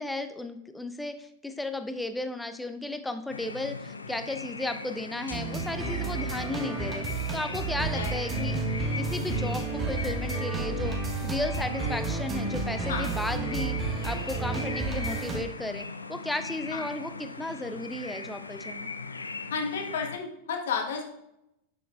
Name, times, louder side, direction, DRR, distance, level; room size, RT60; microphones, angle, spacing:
voice 1, 0.0-7.0 7.3-8.6 9.0-10.9 11.2-13.8 14.0-18.9, left 2 dB, 5° left, 8 dB, 0.6 m, -34 dB
sound 1, 3.3-20.2, left 3 dB, 80° left, 0.5 m, -39 dB
sound 2, 5.3-15.4, right 3 dB, 20° right, 1.2 m, -31 dB
voice 2, 19.5-21.0, left 5 dB, 60° left, 2 dB, 1.3 m, -32 dB
10.5 x 6.9 x 2.4 m, 0.84 s
figure-of-eight pair, 90°, 0 cm